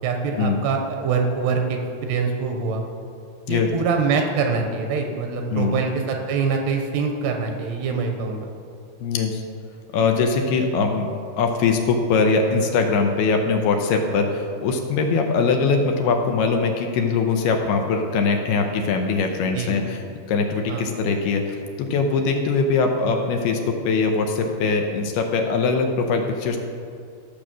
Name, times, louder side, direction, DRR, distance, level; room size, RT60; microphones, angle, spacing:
voice 1, 0.0-2.8 3.5-8.5 19.5-19.8 20.7-20.8, right 5 dB, 75° right, 3 dB, 3.0 m, -24 dB
voice 2, 5.5-5.8 9.0-9.4 9.9-11.1 11.4-20.0 20.3-26.6, left 4 dB, 75° left, 3 dB, 2.6 m, -22 dB
14.0 x 6.8 x 6.2 m, 2.3 s
omnidirectional pair, 5.0 m